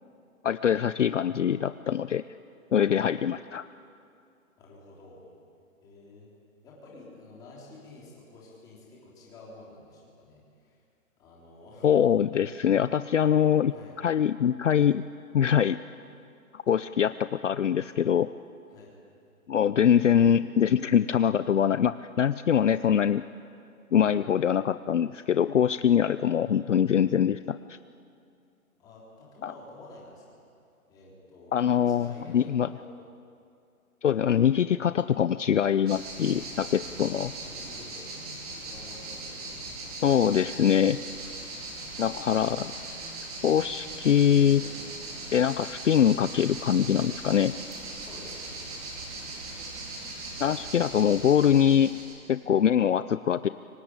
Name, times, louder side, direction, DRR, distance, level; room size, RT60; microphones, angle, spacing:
voice 1, 0.4-2.2 2.7-3.6 11.8-15.0 15.3-15.8 16.5-18.3 19.5-23.2 23.9-27.8 29.4-29.5 31.5-32.1 32.3-32.7 34.0-37.3 40.0-41.0 42.0-42.7 43.4-44.7 45.3-47.5 50.4-52.0 52.3-53.5, left 8 dB, 60° left, 14 dB, 0.7 m, -23 dB
voice 2, 4.6-5.3 5.8-6.3 6.6-10.8 11.2-11.9 13.7-14.0 18.7-18.9 28.8-30.4 30.9-32.9 34.7-34.9 36.8-38.0 38.5-39.8 48.0-48.6, left 2 dB, 10° left, -4 dB, 3.5 m, -50 dB
sound 1, 35.9-52.1, right 2 dB, 25° right, 4.3 m, -39 dB
27.0 x 24.5 x 9.0 m, 2.5 s
hypercardioid pair, 180°, 42 cm